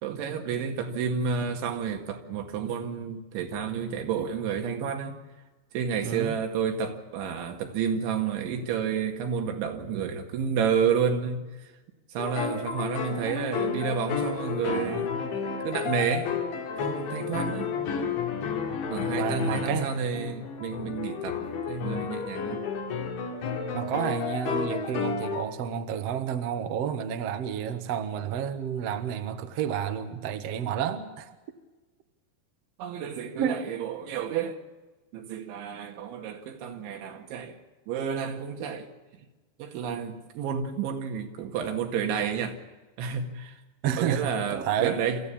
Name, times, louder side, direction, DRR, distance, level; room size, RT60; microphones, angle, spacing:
voice 1, 0.0-5.2 5.7-11.7 12.1-15.1 15.6-16.4 16.8-17.7 18.9-22.6 32.8-34.6 35.1-37.6 37.9-38.9 39.6-42.6 43.0-43.6 44.0-45.2, right 6 dB, 85° right, 4.4 m, -30 dB
voice 2, 6.0-6.4 19.1-19.9 23.7-31.3 33.4-33.6 43.8-45.0, right 9 dB, 70° right, 1.5 m, -30 dB
sound 1, 12.2-25.4, left 6 dB, 80° left, 4.7 m, -31 dB
26.5 x 14.5 x 8.6 m
omnidirectional pair, 5.2 m